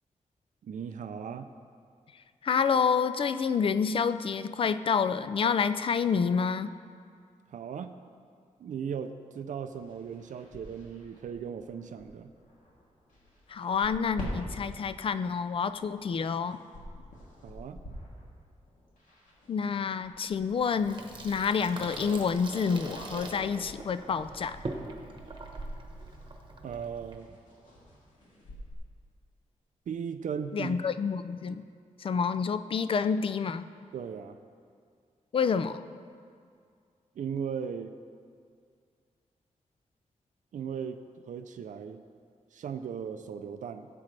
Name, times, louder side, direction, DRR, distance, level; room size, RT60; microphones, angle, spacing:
voice 1, 0.6-1.5 7.5-7.9 8.6-12.3 17.4-17.8 26.6-27.4 29.9-30.8 33.9-34.4 37.2-37.9 40.5-41.0 41.3-42.0 42.5-43.9, right 7 dB, 75° right, 8 dB, 0.5 m, -37 dB
voice 2, 2.4-6.7 13.5-16.6 19.5-24.6 30.5-31.6 32.0-33.7 35.3-35.8, left 6 dB, 45° left, 12 dB, 0.4 m, -28 dB
sound 1, 9.7-28.7, equal, 80° left, 2.8 m, -48 dB
Water tap faucet / Sink (filling or washing), 20.7-27.2, right 2 dB, 35° right, 1.1 m, -42 dB
17.0 x 8.5 x 3.3 m, 2.2 s
wide cardioid pair, 175°, 13 cm